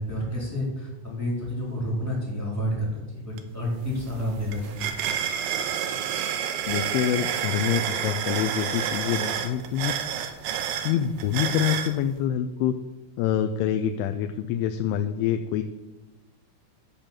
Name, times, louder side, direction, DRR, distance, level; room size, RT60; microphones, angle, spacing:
voice 1, 0.0-4.8, equal, 5° right, -4 dB, 2.6 m, -29 dB
sound 1, 3.4-3.5 3.8-11.9, right 9 dB, 75° right, 2.6 m, -29 dB
voice 2, 6.7-10.2 10.8-12.8 13.2-15.6, left 10 dB, 85° left, 8 dB, 3.0 m, -26 dB
13.5 x 5.1 x 7.3 m, 1.1 s
omnidirectional pair, 5.4 m